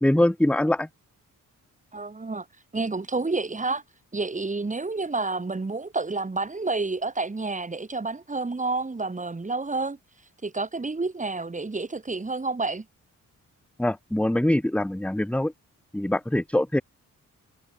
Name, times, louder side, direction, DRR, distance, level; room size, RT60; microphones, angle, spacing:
voice 1, 0.0-0.9 13.8-15.5 15.9-16.8, left 1 dB, 5° left, 1.3 m, -23 dB
voice 2, 1.9-2.5 2.7-3.8 4.1-10.0 10.4-12.9, right 3 dB, 20° right, 5.9 m, -29 dB
wide cardioid pair, 135°, 33 cm